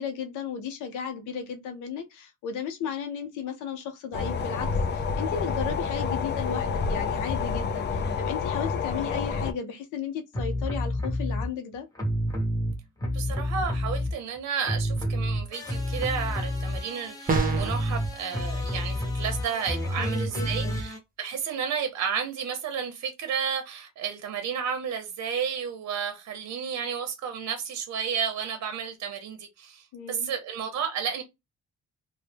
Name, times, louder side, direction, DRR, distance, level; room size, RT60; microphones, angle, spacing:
voice 1, 0.0-11.9 20.0-20.8 29.9-30.3, left 7 dB, 90° left, 0.6 m, -35 dB
sound 1, 4.1-9.5, left 5 dB, 35° left, 0.4 m, -28 dB
sound 2, 10.3-11.5 12.0-14.4 14.6-21.0, equal, 10° left, 0.9 m, -29 dB
voice 2, 13.1-31.2, right 7 dB, 60° right, 0.7 m, -32 dB
sound 3, 17.3-17.8, right 4 dB, 30° right, 0.7 m, -25 dB
2.1 x 2.1 x 3.2 m
cardioid pair, 90°, 30 cm